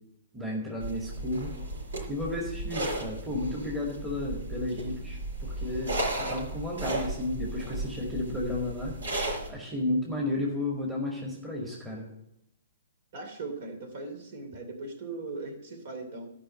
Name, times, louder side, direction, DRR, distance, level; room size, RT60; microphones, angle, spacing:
voice 1, 0.3-1.5 2.1-9.0 9.5-12.1, left 1 dB, 5° right, -3 dB, 2.1 m, -33 dB
sound 1, 0.8-9.5, right 2 dB, 70° right, 5.1 m, -35 dB
voice 2, 13.1-16.3, right 3 dB, 50° right, 6 dB, 2.8 m, -39 dB
12.5 x 5.6 x 7.6 m, 0.82 s
figure-of-eight pair, 120°, 0 cm